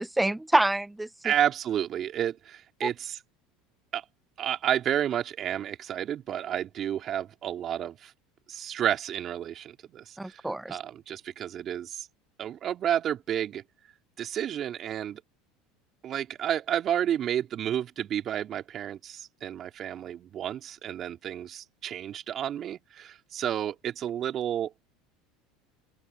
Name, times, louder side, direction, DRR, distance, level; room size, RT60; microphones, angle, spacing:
voice 1, 0.0-1.3 2.8-2.9 10.2-10.8, right 1 dB, 5° right, 0.7 m, -27 dB
voice 2, 1.2-3.2 3.9-4.0 4.4-8.1 8.5-12.1 12.4-13.6 14.2-15.2 16.0-24.7, right 10 dB, 45° right, 3.2 m, -31 dB
open air
hypercardioid pair, 85°, 0 cm